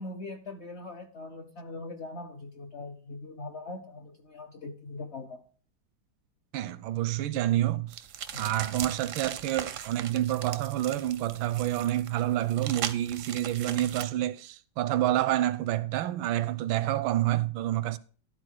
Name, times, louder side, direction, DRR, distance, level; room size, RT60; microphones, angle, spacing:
voice 1, 0.0-5.4 8.3-8.5, left 2 dB, 50° left, 0.8 m, -41 dB
voice 2, 6.5-8.1 8.4-18.0, right 13 dB, 85° right, 1.4 m, -28 dB
sound 1, 7.9-14.0, right 9 dB, 65° right, 0.7 m, -39 dB
12.5 x 4.3 x 6.4 m
omnidirectional pair, 2.1 m